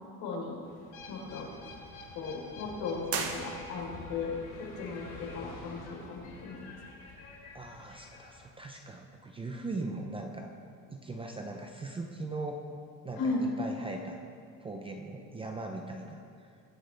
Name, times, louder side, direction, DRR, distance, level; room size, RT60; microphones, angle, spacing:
voice 1, 0.2-0.5 1.1-1.5 2.1-4.3 4.6-6.7 13.2-13.5, left 3 dB, 60° left, -2 dB, 4.1 m, -36 dB
sound 1, 0.6-8.5, left 3 dB, 40° left, 3.5 m, -48 dB
sound 2, 3.0-4.1, right 5 dB, 35° right, 1.2 m, -36 dB
voice 2, 7.5-10.5 10.9-12.6 13.0-14.2 14.6-16.6, right 2 dB, 15° right, 3 dB, 0.6 m, -40 dB
22.5 x 10.5 x 3.4 m, 2.3 s
cardioid pair, 155°, 40 cm